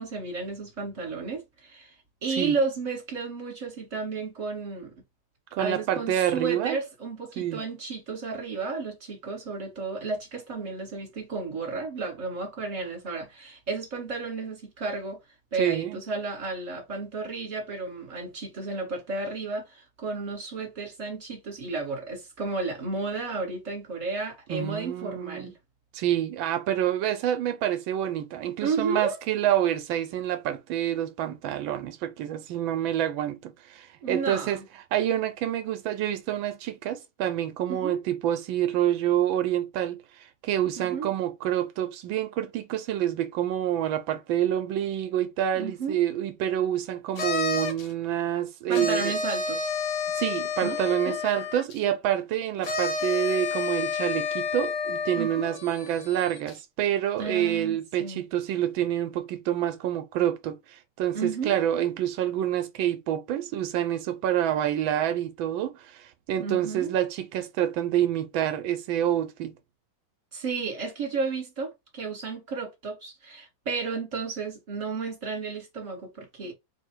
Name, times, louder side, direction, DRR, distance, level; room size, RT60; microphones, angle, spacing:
voice 1, 0.0-4.9 5.6-15.2 15.5-25.5 28.6-29.2 34.0-34.6 37.7-38.0 40.8-41.1 45.5-46.0 48.7-49.7 50.6-50.8 51.1-51.2 55.1-55.5 57.2-58.2 61.1-61.6 66.4-67.0 70.3-76.5, right 4 dB, 25° right, 1.7 m, -32 dB
voice 2, 5.5-6.8 7.4-7.6 15.6-16.0 24.5-25.5 25.9-34.6 34.9-49.1 50.1-69.5, right 11 dB, 85° right, 1.4 m, -27 dB
sound 1, 47.2-47.9 48.7-51.8 52.6-56.6, left 5 dB, 50° left, 1.0 m, -30 dB
3.5 x 2.7 x 4.5 m
omnidirectional pair, 2.1 m